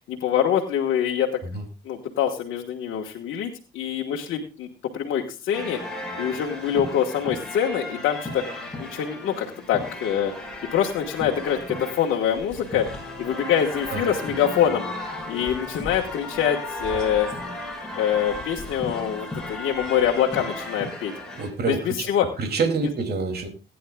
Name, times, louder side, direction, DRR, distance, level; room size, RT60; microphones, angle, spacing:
voice 1, 0.0-1.4 1.8-4.7 4.9-5.8 6.2-8.4 8.8-10.3 10.7-12.9 13.2-14.9 15.3-17.3 17.9-21.1 21.7-22.2, left 9 dB, 80° left, 0 dB, 1.5 m, -25 dB
sound 1, 5.5-21.5, left 1 dB, 5° left, 6.3 m, -35 dB
voice 2, 21.3-22.1 22.4-23.5, right 4 dB, 55° right, 4 dB, 2.7 m, -27 dB
19.5 x 10.0 x 2.3 m, 0.32 s
cardioid pair, 90°, 20 cm